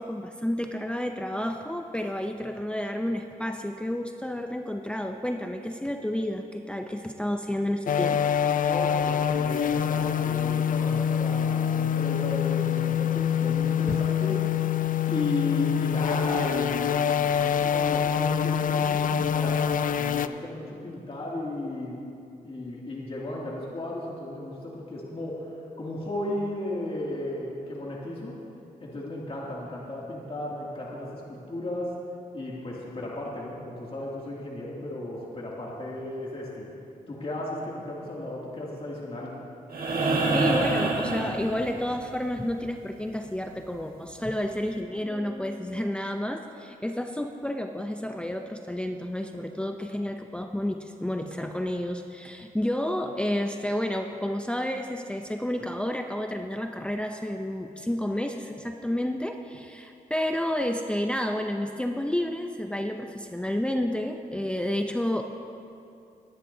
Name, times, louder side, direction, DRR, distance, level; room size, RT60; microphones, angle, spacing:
voice 1, 0.0-8.6 13.9-14.0 40.3-65.2, left 1 dB, 5° left, 4 dB, 0.6 m, -30 dB
sound 1, 7.9-20.3, left 8 dB, 65° left, 0.4 m, -25 dB
voice 2, 8.4-14.4 15.1-19.6 19.9-22.0 22.4-25.5 25.8-28.3 28.8-31.9 32.3-36.7 37.1-39.3, left 1 dB, 40° left, -5 dB, 2.5 m, -34 dB
sound 2, 39.7-42.0 43.9-44.0, right 2 dB, 75° right, 1.5 m, -26 dB
21.5 x 10.5 x 2.8 m, 2.6 s
cardioid pair, 80°, 15 cm